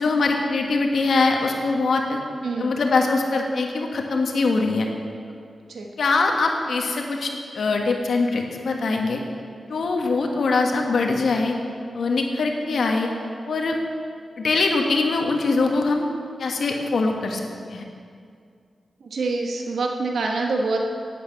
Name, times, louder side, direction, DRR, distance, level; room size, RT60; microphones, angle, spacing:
voice 1, 0.0-2.2 2.6-4.9 6.0-9.2 9.7-11.5 11.9-13.1 13.5-13.8 14.4-16.0 16.4-17.8, left 3 dB, 65° left, 2 dB, 1.5 m, -22 dB
voice 2, 2.4-2.8 5.7-5.9 19.1-20.8, right 3 dB, 75° right, 1 dB, 1.3 m, -25 dB
11.5 x 8.9 x 8.4 m, 2.3 s
wide cardioid pair, 175°, 0 cm